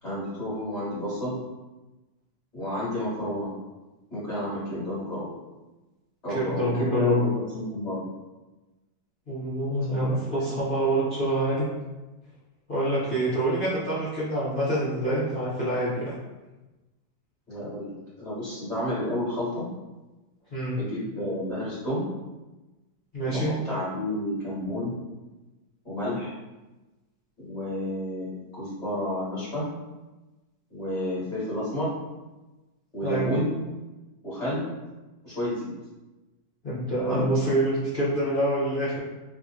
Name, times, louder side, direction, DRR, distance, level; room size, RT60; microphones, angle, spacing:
voice 1, 0.0-1.4 2.5-3.5 4.1-5.3 6.2-7.3 7.5-8.1 9.9-10.0 10.4-10.6 17.5-19.6 20.7-22.0 23.2-24.9 25.8-26.3 27.4-29.7 30.7-31.9 32.9-33.5 34.2-34.6 35.2-35.7 37.0-37.2, left 1 dB, 25° left, -10 dB, 1.4 m, -30 dB
voice 2, 6.3-7.3 9.3-11.7 12.7-16.1 20.5-20.8 23.1-23.5 33.0-33.3 36.6-39.0, right 1 dB, 45° left, -12 dB, 0.7 m, -26 dB
3.4 x 2.7 x 2.3 m, 1.1 s
omnidirectional pair, 2.1 m